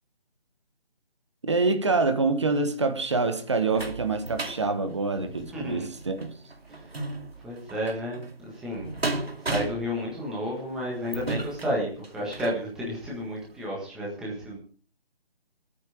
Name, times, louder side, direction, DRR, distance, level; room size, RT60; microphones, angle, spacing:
voice 1, 1.4-6.3, right 3 dB, 30° right, 1.2 m, -26 dB
sound 1, 2.8-12.6 13.2-13.3 13.7-13.8, right 2 dB, 85° right, 2.6 m, -36 dB
voice 2, 5.2-5.9 6.7-7.0 7.4-8.9 9.4-14.6, equal, ahead, 1.6 m, -32 dB
17.0 x 8.9 x 5.2 m
figure-of-eight pair, 165°, 30 cm